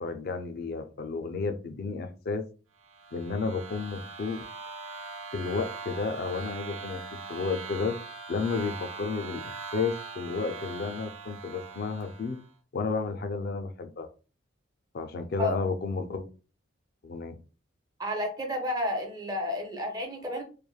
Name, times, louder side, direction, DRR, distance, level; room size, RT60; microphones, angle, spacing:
voice 1, 0.0-2.4 3.1-4.4 5.3-7.0 7.3-8.0 8.3-12.4 12.7-14.1 14.9-16.2 17.0-17.4, left 4 dB, 45° left, 0.3 m, -32 dB
sound 1, 2.8-12.5, right 4 dB, 70° right, 0.6 m, -41 dB
voice 2, 18.0-20.4, left 1 dB, 20° right, 0.4 m, -31 dB
3.1 x 2.1 x 2.3 m
head